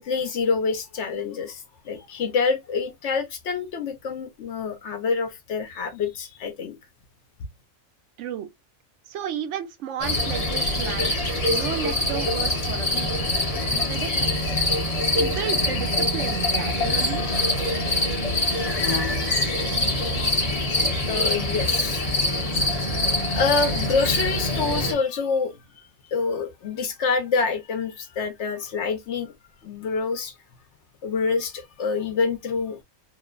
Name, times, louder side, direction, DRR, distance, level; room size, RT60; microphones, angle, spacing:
voice 1, 0.0-6.7 20.5-20.6 20.9-22.6 23.3-25.5 26.1-29.3 29.6-30.3 31.0-32.8, left 4 dB, 70° left, 0.8 m, -27 dB
voice 2, 9.1-13.1 13.7-14.6 15.1-17.2, right 9 dB, 70° right, 0.9 m, -33 dB
sound 1, 10.0-24.9, left 1 dB, 35° left, 0.6 m, -24 dB
2.9 x 2.1 x 2.3 m
omnidirectional pair, 1.4 m